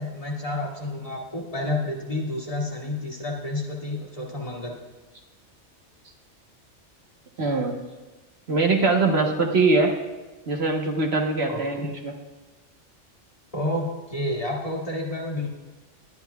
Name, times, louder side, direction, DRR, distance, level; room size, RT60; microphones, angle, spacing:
voice 1, 0.0-4.8 11.5-11.9 13.5-15.5, left 1 dB, 30° left, -4 dB, 2.3 m, -30 dB
voice 2, 7.4-7.7 8.5-9.9 10.5-12.1, right 3 dB, 60° right, 2 dB, 1.4 m, -22 dB
21.5 x 10.5 x 2.3 m, 1.2 s
omnidirectional pair, 1.2 m